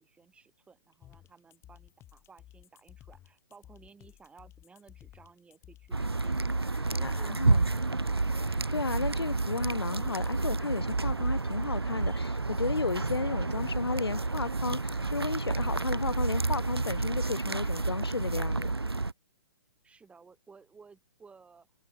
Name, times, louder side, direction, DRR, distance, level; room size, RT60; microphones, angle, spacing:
voice 1, 0.0-6.4 6.7-8.3 19.8-21.7, right 5 dB, 10° right, 6.7 m, -56 dB
sound 1, 1.0-17.0, left 12 dB, 20° left, 4.7 m, -55 dB
sound 2, 5.9-19.1, right 3 dB, 85° right, 1.9 m, -30 dB
voice 2, 7.0-7.7 8.4-18.7, left 4 dB, 85° left, 0.9 m, -34 dB
figure-of-eight pair, 125°, 13 cm